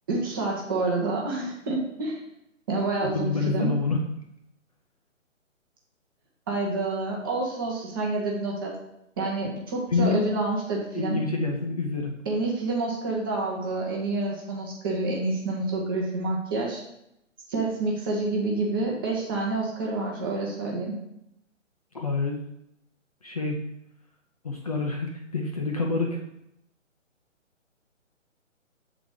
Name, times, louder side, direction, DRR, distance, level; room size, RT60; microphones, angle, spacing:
voice 1, 0.1-2.2 2.7-3.7 6.5-8.7 9.2-11.2 12.3-16.8 17.5-20.9, right 2 dB, 15° right, -2 dB, 0.8 m, -28 dB
voice 2, 3.0-4.0 9.9-10.2 10.9-12.1 21.9-22.4 23.2-23.6 24.4-26.2, left 3 dB, 30° left, 0 dB, 0.5 m, -27 dB
7.0 x 4.0 x 4.7 m, 0.82 s
figure-of-eight pair, 145°, 39 cm